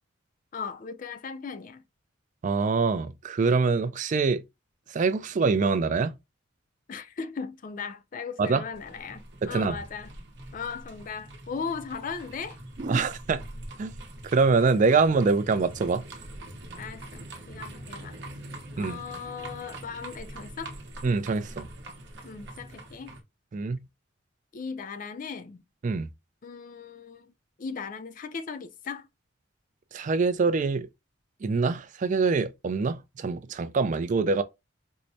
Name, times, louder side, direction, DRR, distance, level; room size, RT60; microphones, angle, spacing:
voice 1, 0.5-1.8 6.9-10.1 10.5-12.6 16.8-18.2 18.8-20.8 22.2-23.2 24.5-25.6 26.4-27.3 27.6-29.1, left 5 dB, 40° left, 0.4 m, -37 dB
voice 2, 2.4-4.4 4.9-6.1 8.4-8.6 9.4-9.8 12.8-13.4 13.8-13.9 14.3-16.0 18.8-19.0 21.0-21.7 23.5-23.8 25.8-26.1 29.9-30.9 31.4-34.4, right 4 dB, 35° right, 0.3 m, -24 dB
sound 1, 8.7-23.2, right 1 dB, 60° right, 0.8 m, -43 dB
4.6 x 2.0 x 2.6 m
head